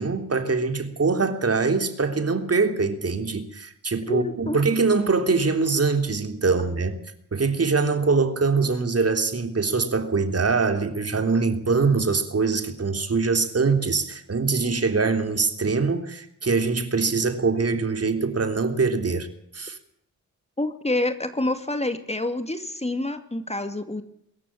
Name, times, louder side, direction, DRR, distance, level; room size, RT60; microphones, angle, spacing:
voice 1, 0.0-7.0 7.3-19.3 19.5-19.8, right 4 dB, 40° right, 7 dB, 3.5 m, -23 dB
voice 2, 4.1-4.6 20.6-24.0, left 2 dB, 15° left, 9 dB, 2.6 m, -27 dB
23.5 x 14.0 x 8.7 m, 0.72 s
supercardioid pair, 50°, 36 cm